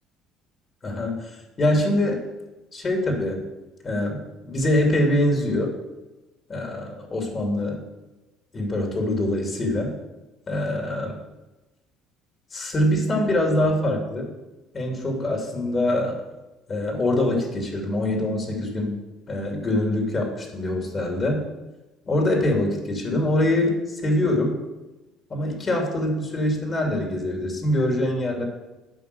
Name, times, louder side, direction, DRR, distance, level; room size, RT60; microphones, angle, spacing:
voice 1, 0.8-2.2 2.7-3.4 3.8-5.7 6.5-7.8 8.5-9.9 10.5-11.2 12.5-14.3 14.7-16.2 16.7-19.0 19.3-21.4 22.0-24.6 25.3-28.4, left 1 dB, 40° left, 1 dB, 3.1 m, -24 dB
9.3 x 5.5 x 7.0 m, 1.1 s
hypercardioid pair, 65°, 0 cm